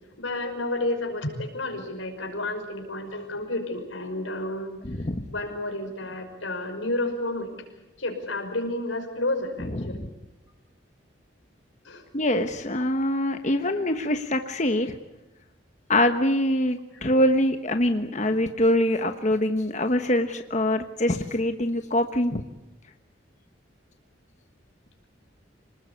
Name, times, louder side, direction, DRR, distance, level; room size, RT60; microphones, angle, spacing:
voice 1, 0.2-4.8 5.3-7.5 8.0-10.0 11.8-12.0 16.9-17.1, left 2 dB, 90° left, 5 dB, 5.7 m, -31 dB
voice 2, 4.8-5.2 9.7-10.1 12.1-14.9 15.9-22.4, left 1 dB, 40° left, 7 dB, 1.2 m, -24 dB
27.0 x 19.5 x 8.5 m, 1.0 s
head